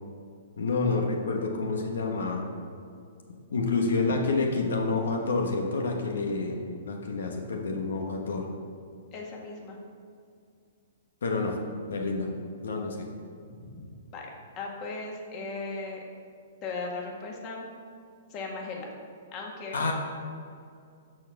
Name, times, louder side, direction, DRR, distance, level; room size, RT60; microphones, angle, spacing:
voice 1, 0.6-2.5 3.5-8.5 11.2-11.6 11.9-12.3 12.6-13.1 19.7-19.9, left 3 dB, 85° left, 2 dB, 1.3 m, -28 dB
voice 2, 9.1-9.8 13.6-13.8 14.1-14.3 14.6-16.0 16.6-17.7 18.3-18.9 19.3-19.8, left 3 dB, 30° left, -1 dB, 1.8 m, -37 dB
13.0 x 4.5 x 5.8 m, 2.3 s
hypercardioid pair, 145°, 0 cm